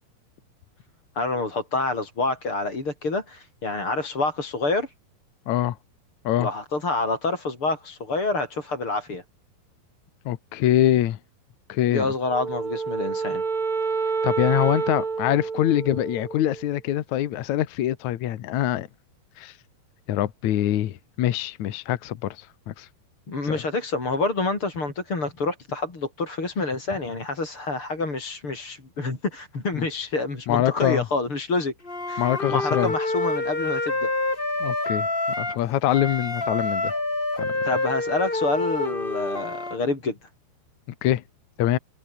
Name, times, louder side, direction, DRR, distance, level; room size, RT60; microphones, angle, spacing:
voice 1, 1.2-4.9 6.4-9.2 11.9-13.4 23.3-31.7 32.1-34.1 37.6-40.2, left 3 dB, 30° left, 6.0 m, -27 dB
voice 2, 5.5-5.8 6.2-6.5 10.3-11.2 11.7-12.1 14.2-18.9 19.4-19.5 20.1-22.9 23.4-23.6 29.7-29.8 30.5-31.1 32.2-32.9 34.6-35.1 35.4-36.9 37.4-37.5 41.0-41.2 41.6-41.8, left 12 dB, 75° left, 1.8 m, -24 dB
Wind instrument woodwind instrument, 12.3-16.7, right 5 dB, 40° right, 5.5 m, -28 dB
Wind instrument woodwind instrument 2, 31.8-35.6 35.9-39.8, left 2 dB, 15° left, 3.0 m, -27 dB
omnidirectional pair, 5.1 m